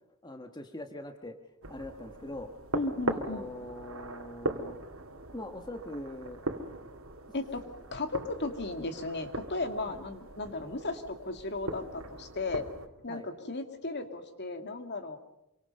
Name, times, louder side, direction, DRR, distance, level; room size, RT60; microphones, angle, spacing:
voice 1, 0.2-1.4 1.7-2.5 3.1-4.8 5.3-6.4 9.9-10.0 13.1-13.3, left 1 dB, 20° left, 5 dB, 1.4 m, -42 dB
sound 1, 1.6-12.9, right 2 dB, 65° right, 2.7 m, -40 dB
voice 2, 2.7-3.4 7.3-7.6 7.9-12.6 13.0-15.2, left 2 dB, 50° left, 7 dB, 2.4 m, -35 dB
27.0 x 24.5 x 5.4 m, 0.90 s
head